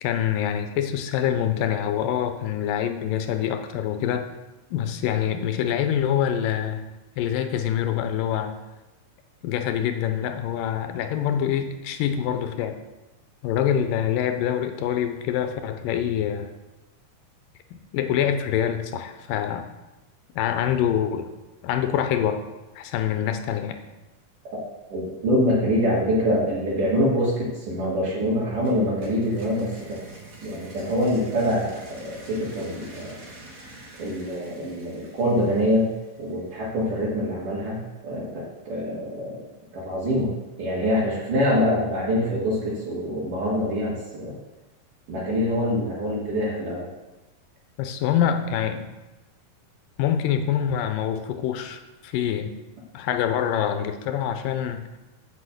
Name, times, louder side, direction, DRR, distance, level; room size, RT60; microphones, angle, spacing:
voice 1, 0.0-4.3 4.7-6.8 7.2-8.6 9.4-12.8 13.4-16.5 17.9-19.7 20.4-21.3 21.6-22.4 22.8-23.8 47.8-48.9 50.0-52.5 52.9-54.8, left 9 dB, 90° left, 8 dB, 2.5 m, -25 dB
voice 2, 24.9-30.0 30.4-33.2 34.0-35.9 36.2-39.4 39.7-40.3 40.6-44.3 45.1-46.9, equal, 70° right, -7 dB, 3.5 m, -25 dB
sound 1, 28.6-36.4, right 2 dB, 30° right, 1.7 m, -46 dB
8.7 x 5.7 x 8.0 m, 1.1 s
omnidirectional pair, 3.9 m